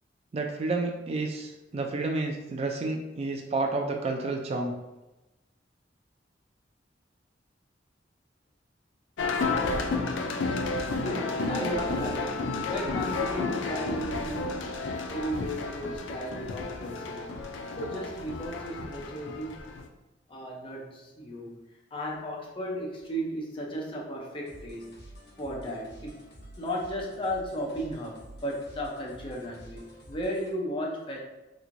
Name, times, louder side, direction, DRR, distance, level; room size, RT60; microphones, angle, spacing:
voice 1, 0.3-4.7, right 3 dB, 35° right, 2 dB, 0.3 m, -30 dB
sound 1, 9.2-19.9, left 3 dB, 90° left, 0.4 m, -31 dB
voice 2, 11.0-14.7 15.1-17.3 17.7-19.7 20.3-21.5 21.9-24.9 25.4-26.2 26.6-31.2, equal, 30° left, -1 dB, 0.6 m, -35 dB
sound 2, 24.4-30.5, right 1 dB, 65° left, 0.9 m, -49 dB
3.3 x 3.1 x 2.5 m, 1.0 s
head